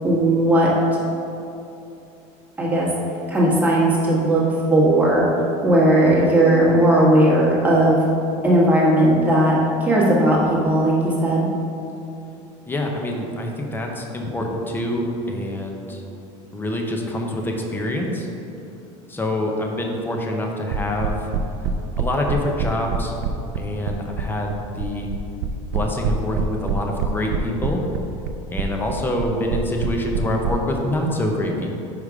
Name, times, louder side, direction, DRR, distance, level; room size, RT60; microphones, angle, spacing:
voice 1, 0.0-0.7 2.6-2.9 3.3-4.4 4.7-5.2 5.6-8.1 8.4-9.5 9.8-11.5, right 1 dB, 10° right, -6 dB, 1.4 m, -17 dB
voice 2, 12.7-16.0 16.5-18.3 19.1-21.3 22.0-23.1 23.6-25.1 25.7-27.8 28.5-31.7, left 1 dB, 15° left, 1 dB, 0.7 m, -25 dB
sound 1, 20.7-30.5, right 8 dB, 80° right, 0.5 m, -25 dB
5.0 x 5.0 x 4.9 m, 2.7 s
supercardioid pair, 135°, 16 cm